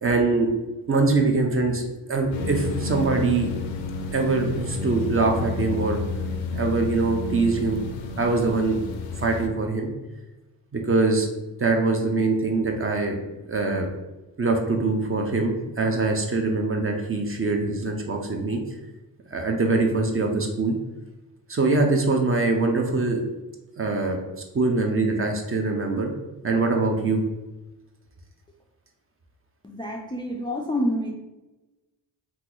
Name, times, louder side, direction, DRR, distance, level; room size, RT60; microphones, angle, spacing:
voice 1, 0.0-0.5 0.9-3.5 4.1-6.0 6.5-7.8 8.2-8.8 9.2-9.9 10.7-11.3 11.6-13.2 13.4-13.9 14.4-18.6 19.3-20.7 21.5-23.2 23.8-24.2 24.5-26.1 26.4-27.2, right 3 dB, 30° right, 2 dB, 0.6 m, -23 dB
sound 1, 2.3-9.5, left 3 dB, 80° left, 0.5 m, -31 dB
voice 2, 29.6-31.1, equal, 10° left, 0 dB, 0.4 m, -27 dB
2.8 x 2.0 x 3.7 m, 1.0 s
cardioid pair, 60°, 45 cm